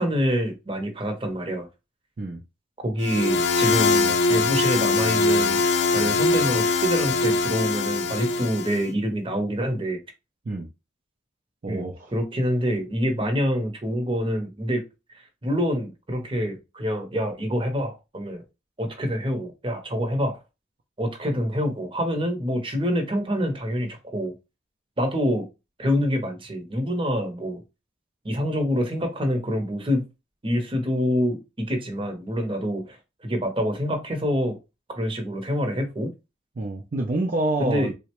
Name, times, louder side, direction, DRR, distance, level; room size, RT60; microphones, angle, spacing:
voice 1, 0.0-1.7 2.8-5.6 5.9-10.0 11.7-14.8 15.1-18.4 18.8-20.4 21.0-24.3 25.0-25.5 25.8-27.6 28.2-30.0 30.4-33.0 33.2-34.6 34.9-36.1 37.6-37.9, equal, 25° right, 0.8 m, -26 dB
sound 1, 3.0-8.8, left 3 dB, 70° left, 0.4 m, -22 dB
voice 2, 11.6-12.1 36.6-37.9, right 2 dB, 45° right, 0.4 m, -27 dB
3.7 x 2.1 x 3.0 m
head